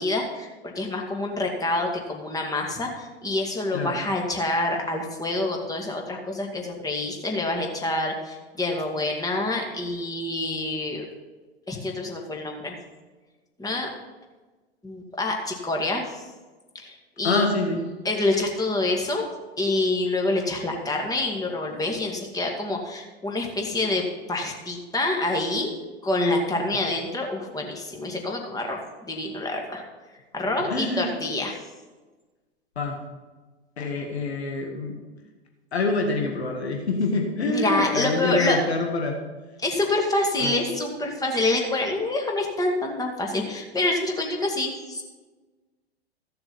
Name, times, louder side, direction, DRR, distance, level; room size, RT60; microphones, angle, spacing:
voice 1, 0.0-11.1 11.7-12.7 13.6-13.9 14.8-16.2 16.7-17.5 18.0-19.2 19.6-25.7 26.0-29.8 30.3-31.6 37.5-38.6 39.6-45.0, left 2 dB, 10° left, 1 dB, 2.2 m, -27 dB
voice 2, 17.2-17.9 30.7-31.1 32.8-33.0 33.8-35.0 35.7-39.2 40.4-40.5, left 3 dB, 80° left, 2 dB, 1.8 m, -26 dB
15.0 x 6.9 x 5.5 m, 1.3 s
figure-of-eight pair, 95°, 32 cm